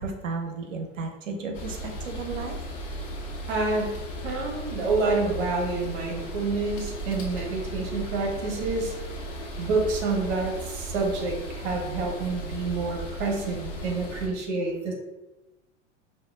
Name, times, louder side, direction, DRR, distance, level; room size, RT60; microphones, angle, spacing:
voice 1, 0.0-2.6, right 4 dB, 80° right, 4 dB, 0.8 m, -34 dB
sound 1, 1.5-14.3, equal, 75° left, 1.1 m, -36 dB
voice 2, 3.5-4.0 4.2-9.0 9.6-14.9, right 3 dB, 60° right, 0 dB, 1.3 m, -28 dB
5.2 x 2.3 x 2.5 m, 1.0 s
hypercardioid pair, 95°, 38 cm